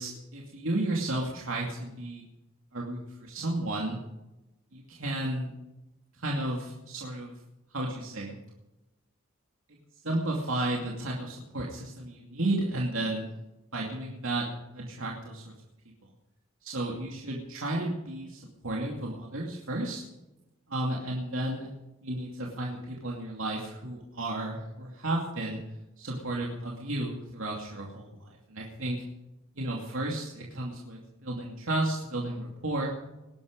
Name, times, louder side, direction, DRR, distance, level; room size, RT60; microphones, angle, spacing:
voice 1, 0.0-2.2 2.7-4.0 4.7-5.5 6.2-7.3 7.7-8.3 9.7-9.8 10.0-13.3 13.7-14.5 14.7-15.5 16.6-20.0 20.7-21.7 22.0-25.6 26.0-29.0 29.6-32.9, right 1 dB, 75° right, -2 dB, 2.6 m, -33 dB
20.5 x 11.0 x 5.3 m, 0.98 s
head